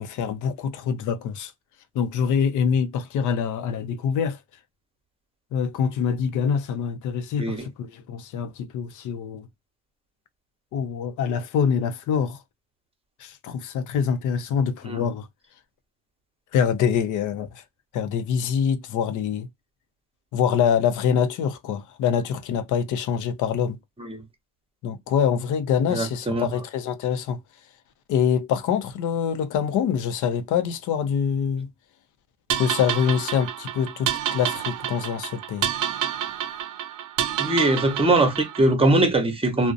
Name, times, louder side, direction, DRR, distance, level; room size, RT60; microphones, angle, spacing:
voice 1, 0.0-1.5 1.9-4.4 5.5-9.5 10.7-12.4 13.2-15.3 16.5-17.5 17.9-19.5 20.3-23.8 24.8-27.4 28.1-31.7 32.5-35.7, left 7 dB, 80° left, 0.5 m, -25 dB
voice 2, 25.9-26.5 37.4-39.7, right 2 dB, 20° right, 0.9 m, -21 dB
sound 1, 32.5-38.7, right 10 dB, 85° right, 0.5 m, -29 dB
2.4 x 2.1 x 2.4 m
cardioid pair, 90°, 30 cm